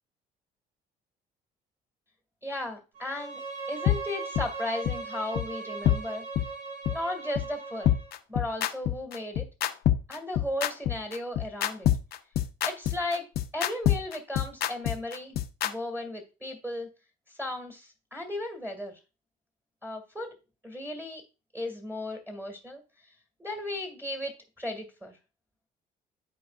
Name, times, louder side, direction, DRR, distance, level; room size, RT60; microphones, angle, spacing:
voice 1, 2.4-3.4 3.7-6.2 6.9-7.9 8.3-9.5 10.1-11.9 12.6-15.4 15.6-16.9 17.4-19.0 19.8-20.4 20.6-21.2 21.5-22.8 23.4-25.2, left 1 dB, 15° right, 3 dB, 2.2 m, -35 dB
Bowed string instrument, 3.0-8.1, right 4 dB, 90° right, 2.1 m, -39 dB
sound 1, 3.9-4.0 4.3-4.5 4.8-4.9 5.4-5.5 5.8-6.0 6.3-6.5 6.8-6.9 7.4-7.5 7.8-15.7, left 12 dB, 70° left, 0.7 m, -25 dB
13.0 x 4.7 x 2.5 m, 0.30 s
cardioid pair, 110°, 17 cm